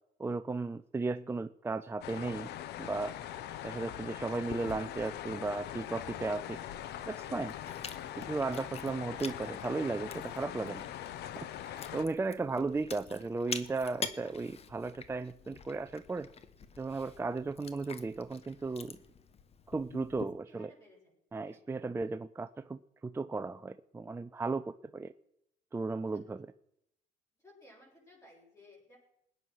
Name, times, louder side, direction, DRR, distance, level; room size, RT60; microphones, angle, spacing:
voice 1, 0.2-2.5 2.8-3.2 3.6-6.6 7.1-7.5 8.2-10.8 11.2-16.3 16.8-19.0 19.7-20.7 21.3-25.1 25.7-26.5, right 3 dB, 15° right, 11 dB, 0.5 m, -35 dB
sound 1, 2.0-12.1, left 11 dB, 75° left, 0.9 m, -42 dB
Chewing mastication, 4.5-20.2, left 6 dB, 35° left, 1.1 m, -47 dB
voice 2, 20.5-21.1 21.4-21.6 26.1-26.2 27.4-29.0, left 1 dB, 20° left, -5 dB, 7.5 m, -59 dB
20.5 x 9.3 x 6.3 m, 0.78 s
cardioid pair, 110°, 17 cm